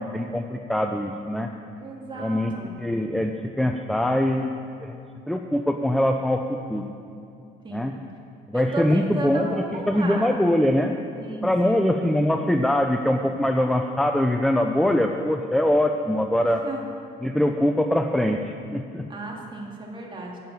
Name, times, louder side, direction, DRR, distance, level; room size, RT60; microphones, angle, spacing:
voice 1, 0.0-1.5 2.2-3.3 3.6-4.5 4.8-5.0 5.3-6.4 6.7-6.9 7.7-7.9 8.5-10.9 11.4-16.6 17.2-18.4 18.7-19.1, left 1 dB, ahead, 4 dB, 0.5 m, -23 dB
voice 2, 1.8-2.7 7.6-7.9 8.5-10.3 11.1-11.9 16.4-16.8 19.1-20.4, right 2 dB, 30° right, -1 dB, 2.2 m, -34 dB
9.3 x 7.4 x 8.7 m, 2.5 s
cardioid pair, 110°, 17 cm